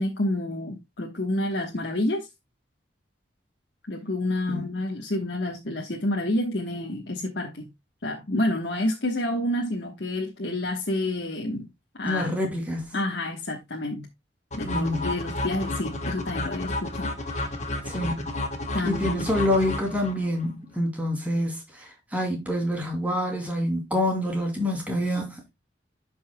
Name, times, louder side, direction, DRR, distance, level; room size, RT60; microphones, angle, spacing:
voice 1, 0.0-2.3 3.9-7.7 8.0-11.7 12.0-12.3 12.9-14.1 14.5-17.5 18.7-19.3, left 1 dB, 70° left, 1.2 m, -29 dB
voice 2, 12.0-12.9 14.6-15.1 17.9-18.3 18.8-25.5, left 1 dB, 10° right, 2.7 m, -27 dB
sound 1, 14.5-20.5, left 2 dB, 40° left, 1.3 m, -31 dB
12.5 x 5.5 x 2.2 m
head